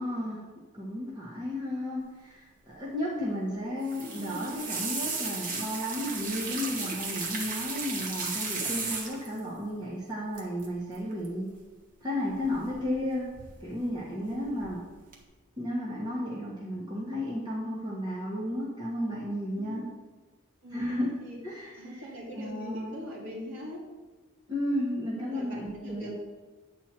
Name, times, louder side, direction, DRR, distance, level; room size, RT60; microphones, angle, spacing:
voice 1, 0.0-11.5 12.0-13.3 13.6-14.8 15.6-19.8 20.7-21.2 21.4-22.1 22.3-23.0 24.5-26.1, left 1 dB, 20° right, -6 dB, 1.5 m, -33 dB
sound 1, 3.8-9.4 10.4-10.7 10.9-11.3 12.4-13.0 13.3-13.9 14.3-14.7 15.1-15.2, right 3 dB, 40° right, 1.3 m, -35 dB
voice 2, 14.1-14.8 19.6-19.9 20.6-21.4 21.8-23.8 25.2-26.1, equal, 60° right, -6 dB, 3.5 m, -42 dB
9.4 x 4.5 x 7.5 m, 1.2 s
head